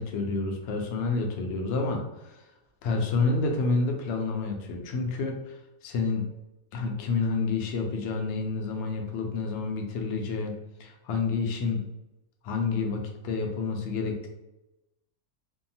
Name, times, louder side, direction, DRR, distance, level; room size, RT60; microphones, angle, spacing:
voice 1, 0.0-2.4 2.8-5.6 5.8-6.3 6.7-10.5 10.8-11.8 12.4-14.3, left 4 dB, 70° left, 2 dB, 0.7 m, -29 dB
2.6 x 2.2 x 2.7 m, 0.98 s
omnidirectional pair, 1.6 m